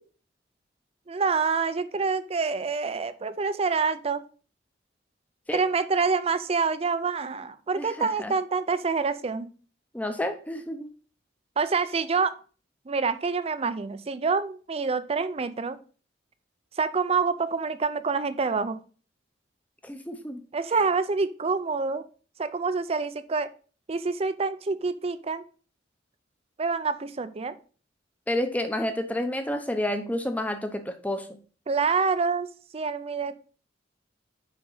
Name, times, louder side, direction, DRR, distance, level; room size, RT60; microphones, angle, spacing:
voice 1, 1.1-4.2 5.5-9.5 11.6-12.3 12.9-15.8 16.8-18.8 20.5-22.1 22.4-23.5 23.9-25.4 26.6-27.5 31.7-32.5 32.7-33.3, right 4 dB, 30° right, 13 dB, 0.5 m, -27 dB
voice 2, 7.8-8.3 9.9-10.9 19.8-20.4 20.7-20.8 28.3-31.3, left 1 dB, 10° left, 7 dB, 0.7 m, -30 dB
5.9 x 5.2 x 3.8 m, 0.39 s
head